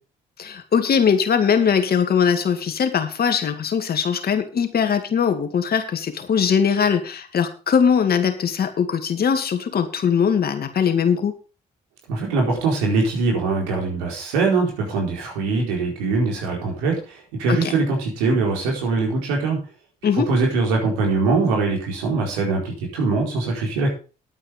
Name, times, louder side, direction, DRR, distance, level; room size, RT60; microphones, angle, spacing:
voice 1, 0.4-11.3 17.5-17.7 20.0-20.3, left 7 dB, 55° left, 7 dB, 2.2 m, -21 dB
voice 2, 12.1-19.6 20.1-23.9, right 3 dB, 90° right, 0 dB, 4.4 m, -22 dB
11.0 x 9.0 x 5.2 m, 0.35 s
hypercardioid pair, 50°, 19 cm